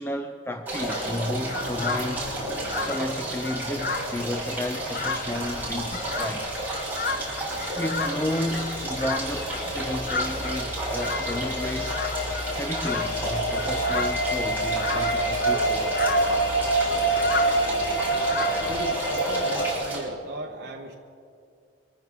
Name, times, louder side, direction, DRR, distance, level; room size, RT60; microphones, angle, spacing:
voice 1, 0.0-2.3 2.6-6.5 7.8-11.9 12.5-15.9, left 1 dB, 10° left, 5 dB, 0.5 m, -32 dB
sound 1, 0.7-20.0, right 2 dB, 10° right, 5.0 m, -32 dB
sound 2, 0.9-18.9, left 3 dB, 50° left, 0.8 m, -34 dB
sound 3, 2.6-19.7, right 2 dB, 80° left, 2.5 m, -29 dB
voice 2, 18.7-21.0, right 1 dB, 55° right, -1 dB, 1.0 m, -37 dB
24.0 x 14.5 x 3.6 m, 2.4 s
head